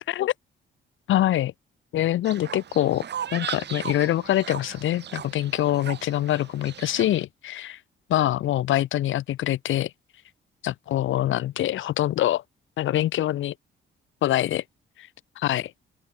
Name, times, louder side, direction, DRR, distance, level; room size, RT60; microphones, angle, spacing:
voice 1, 1.1-1.5 1.9-3.1 3.3-7.8 8.1-9.9 10.6-12.4 12.8-13.5 14.2-14.6 15.4-15.7, left 13 dB, 80° left, 2.4 m, -24 dB
Fowl, 2.2-7.2, right 9 dB, 60° right, 4.7 m, -37 dB
open air
cardioid pair, 90°, 20 cm